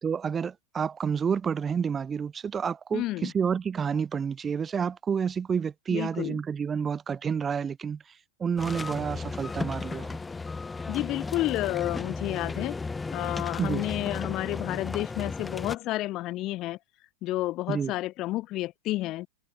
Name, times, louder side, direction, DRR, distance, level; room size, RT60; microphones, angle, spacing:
voice 1, 0.0-8.0 8.4-10.2 13.6-13.8 17.7-17.9, right 6 dB, 20° right, 1.7 m, -29 dB
voice 2, 2.9-3.3 5.9-6.4 10.9-12.7 13.1-16.8 17.2-19.3, left 17 dB, 35° left, 1.1 m, -31 dB
sound 1, 8.6-15.8, left 4 dB, 10° left, 6.9 m, -34 dB
figure-of-eight pair, 90°, 0 cm